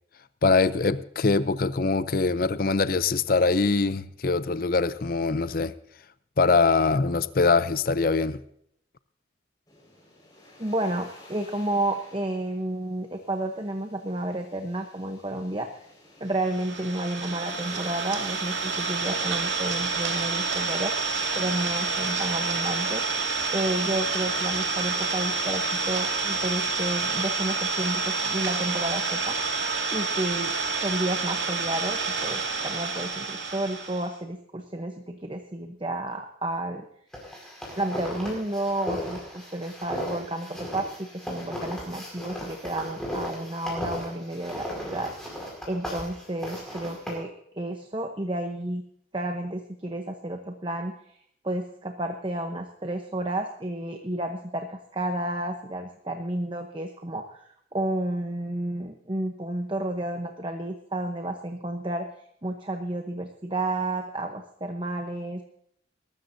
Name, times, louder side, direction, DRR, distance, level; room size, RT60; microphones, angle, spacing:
voice 1, 0.4-5.7 6.4-8.4, left 4 dB, 50° left, 0.5 m, -23 dB
sound 1, 9.7-20.3, left 1 dB, 20° left, 5.1 m, -50 dB
voice 2, 10.6-15.7 16.2-20.9 21.4-23.1 23.5-29.4 29.9-36.9 37.8-45.1 45.7-47.3 47.5-48.8 49.1-51.0 51.4-62.1 62.4-65.4, right 1 dB, 25° right, 0.9 m, -31 dB
Idling, 16.4-34.1, right 4 dB, 75° right, 2.1 m, -28 dB
sound 2, 37.1-47.1, equal, 5° left, 5.3 m, -36 dB
21.5 x 13.0 x 2.7 m
head